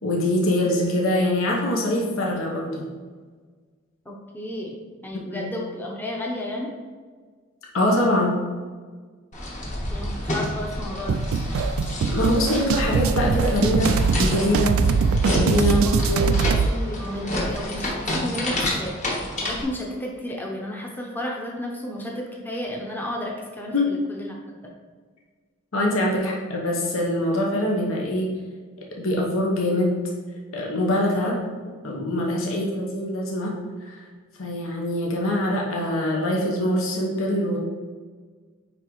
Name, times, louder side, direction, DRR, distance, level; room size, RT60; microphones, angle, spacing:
voice 1, 0.0-2.8 5.3-5.5 7.7-8.4 12.1-14.8 15.3-16.4 23.7-23.9 25.7-28.3 28.9-30.0 30.5-31.4 31.8-34.0 34.4-37.6, left 1 dB, 75° left, -2 dB, 1.0 m, -24 dB
voice 2, 4.1-4.8 5.0-6.7 9.9-11.2 15.6-16.3 16.7-24.3 26.2-26.3, left 1 dB, 10° left, -1 dB, 0.8 m, -32 dB
sound 1, 9.3-19.6, left 1 dB, 35° left, 1.3 m, -29 dB
sound 2, 11.1-16.7, right 5 dB, 85° right, 0.3 m, -22 dB
9.0 x 3.5 x 3.1 m, 1.5 s
head